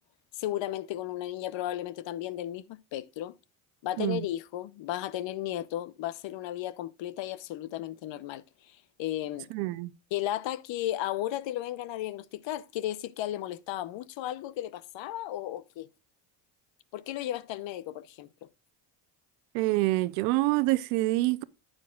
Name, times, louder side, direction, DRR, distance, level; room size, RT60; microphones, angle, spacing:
voice 1, 0.3-3.4 3.8-8.4 9.0-9.5 10.1-15.9 16.9-18.3, left 13 dB, 65° left, 0.9 m, -34 dB
voice 2, 9.5-9.9 19.5-21.4, right 19 dB, 90° right, 0.7 m, -26 dB
10.0 x 8.9 x 2.3 m
supercardioid pair, 70°, 49 cm